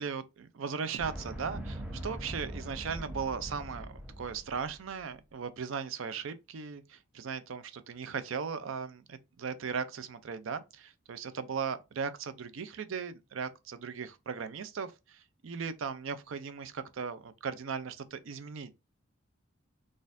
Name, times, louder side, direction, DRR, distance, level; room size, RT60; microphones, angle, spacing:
voice 1, 0.0-18.7, right 6 dB, 75° right, 0.4 m, -38 dB
sound 1, 1.0-4.9, right 1 dB, 5° right, 0.9 m, -41 dB
4.1 x 2.5 x 2.5 m
head